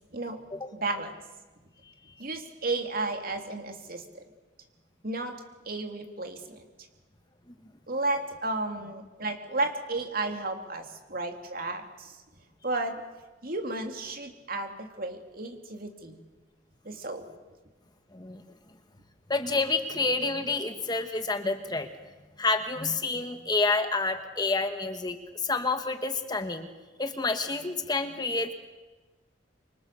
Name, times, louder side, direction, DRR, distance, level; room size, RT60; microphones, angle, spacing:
voice 1, 0.7-1.1 2.2-4.2 5.0-5.4 5.6-6.6 7.9-12.2 12.6-13.0 13.4-16.2 16.8-17.3, right 2 dB, 50° right, 5 dB, 3.1 m, -33 dB
voice 2, 19.3-21.9 22.4-26.7 27.0-28.5, left 3 dB, 20° left, 7 dB, 1.3 m, -28 dB
27.0 x 25.5 x 6.9 m, 1.2 s
head